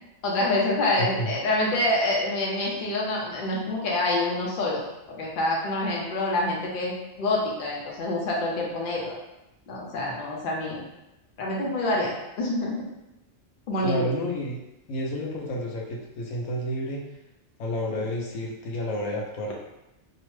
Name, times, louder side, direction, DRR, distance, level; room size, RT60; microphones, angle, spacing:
voice 1, 0.2-4.8 5.1-9.2 9.7-10.8 11.4-12.8 13.7-14.0, left 2 dB, 55° left, -3 dB, 0.6 m, -26 dB
voice 2, 1.0-1.3 13.8-14.6 14.9-17.0 17.6-19.5, equal, 90° left, -1 dB, 1.0 m, -30 dB
2.8 x 2.1 x 3.0 m, 0.93 s
omnidirectional pair, 1.4 m